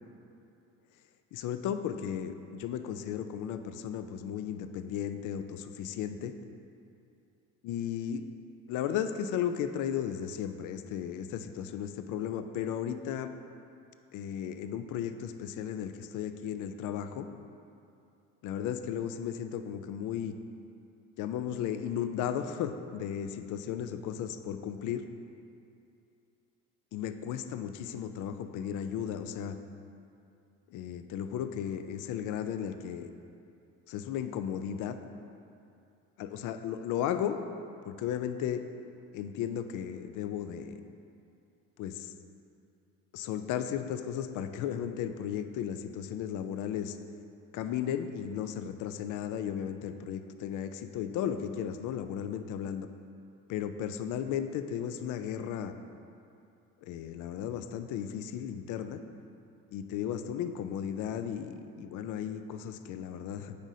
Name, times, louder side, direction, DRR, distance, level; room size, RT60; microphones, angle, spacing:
voice 1, 1.3-6.3 7.6-8.3 8.7-13.3 14.1-17.3 18.4-20.4 21.2-25.0 26.9-29.6 30.7-33.1 33.9-35.0 36.2-37.4 37.9-38.7 39.1-40.8 41.8-42.1 43.1-47.0 47.5-52.9 53.5-55.7 56.8-59.0 59.7-63.5, left 9 dB, 55° left, 9 dB, 0.5 m, -35 dB
7.9 x 4.9 x 2.7 m, 2.6 s
hypercardioid pair, 70°, 36 cm